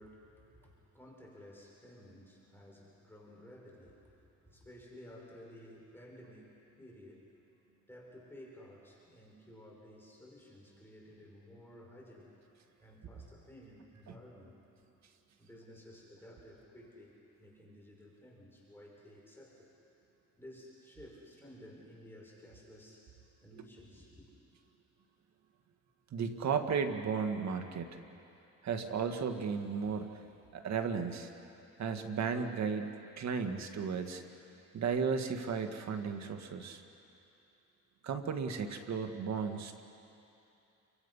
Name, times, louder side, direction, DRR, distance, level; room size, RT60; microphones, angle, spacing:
voice 1, 0.0-7.3 7.9-12.4 12.8-14.6 15.4-19.7 20.4-23.1 23.4-24.3, equal, 5° left, -4 dB, 5.7 m, -54 dB
voice 2, 26.1-27.9 28.6-30.2 30.5-31.3 31.8-34.2 34.7-36.8 38.0-39.8, right 6 dB, 65° right, 6 dB, 1.9 m, -34 dB
29.0 x 25.0 x 5.6 m, 2.8 s
cardioid pair, 90°, 30 cm